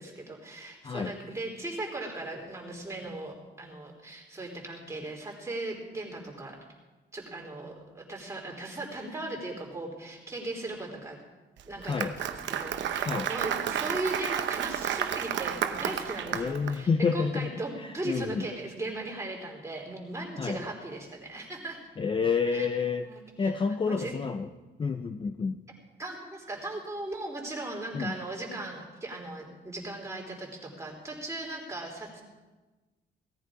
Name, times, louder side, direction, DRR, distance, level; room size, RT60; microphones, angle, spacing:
voice 1, 0.0-6.6 7.1-11.2 11.7-21.8 22.5-22.7 23.0-23.6 23.8-24.2 26.0-32.2, right 2 dB, 15° right, -1 dB, 3.5 m, -38 dB
Applause, 11.6-16.7, right 9 dB, 85° right, 0.9 m, -31 dB
voice 2, 11.8-12.1 13.1-13.3 16.3-17.5 18.1-18.4 20.4-20.6 22.0-23.1 23.4-24.5 24.8-25.6 27.9-28.1, left 5 dB, 25° left, 8 dB, 0.5 m, -29 dB
18.0 x 14.0 x 5.0 m, 1.2 s
wide cardioid pair, 155°, 18 cm